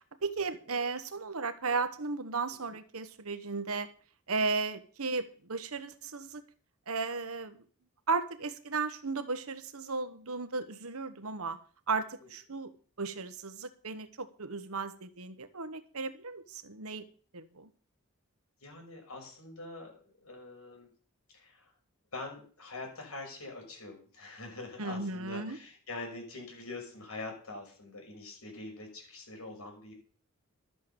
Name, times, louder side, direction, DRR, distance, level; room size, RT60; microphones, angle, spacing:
voice 1, 0.2-3.9 4.3-6.4 6.9-7.6 8.1-11.6 11.9-12.7 13.0-17.1 17.3-17.7 24.8-25.6, right 4 dB, 80° right, 11 dB, 1.3 m, -35 dB
voice 2, 18.6-20.9 21.3-21.7 22.1-29.9, left 2 dB, 80° left, 2 dB, 6.1 m, -44 dB
13.0 x 8.4 x 7.1 m, 0.42 s
head